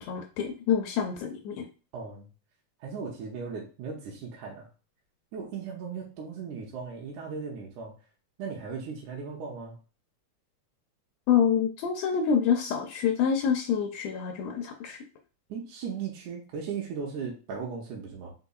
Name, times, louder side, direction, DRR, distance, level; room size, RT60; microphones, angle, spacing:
voice 1, 0.0-1.7 11.3-15.0, left 7 dB, 80° left, 4 dB, 1.7 m, -27 dB
voice 2, 1.9-2.3 2.8-4.7 5.3-7.9 8.4-9.8 15.5-18.3, right 5 dB, 90° right, -2 dB, 2.2 m, -37 dB
4.5 x 4.0 x 2.3 m, 0.35 s
omnidirectional pair, 3.4 m